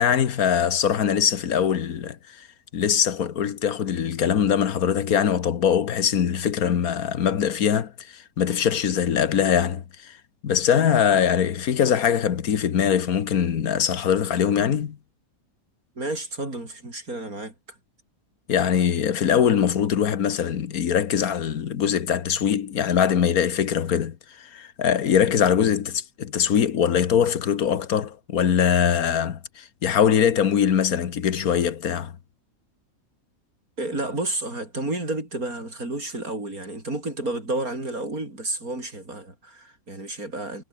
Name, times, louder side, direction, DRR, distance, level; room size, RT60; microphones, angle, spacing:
voice 1, 0.0-2.5 2.7-10.1 10.4-15.0 18.5-32.1, left 8 dB, 90° left, 1.7 m, -22 dB
voice 2, 16.0-17.5 33.8-40.7, right 2 dB, 80° right, 7.2 m, -31 dB
omnidirectional pair, 1.5 m